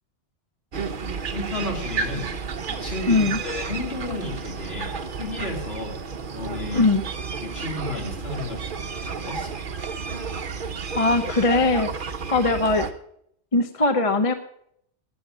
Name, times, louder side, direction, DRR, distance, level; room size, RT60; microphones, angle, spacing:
sound 1, 0.7-12.9, right 5 dB, 45° right, 1.0 m, -32 dB
voice 1, 1.3-2.3 2.7-6.9 7.4-9.5, left 2 dB, 55° left, 0 dB, 3.8 m, -33 dB
voice 2, 3.1-3.4 6.7-7.0 11.0-11.9 12.3-12.9 13.5-14.3, left 3 dB, 30° left, 8 dB, 0.9 m, -20 dB
13.5 x 9.9 x 6.8 m, 0.69 s
omnidirectional pair, 1.2 m